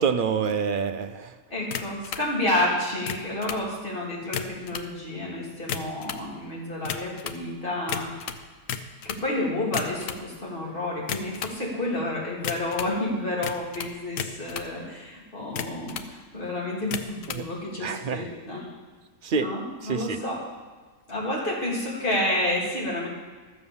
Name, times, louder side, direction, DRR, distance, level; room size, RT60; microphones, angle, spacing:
voice 1, 0.0-1.4 17.3-17.5 17.8-18.2 19.2-19.5 19.8-20.2, right 6 dB, 55° right, 9 dB, 0.6 m, -27 dB
voice 2, 1.5-8.3 9.0-18.7 19.3-20.4 21.1-23.1, left 1 dB, 40° left, -4 dB, 3.0 m, -30 dB
sound 1, 1.7-2.3 2.9-3.7 4.2-4.9 5.5-6.3 6.8-7.4 7.9-9.3 9.6-10.2 11.0-11.6 12.4-13.0 13.4-14.7 15.4-16.1 16.8-17.5, left 8 dB, 80° left, 1.1 m, -34 dB
13.0 x 7.6 x 7.0 m, 1.4 s
omnidirectional pair, 1.4 m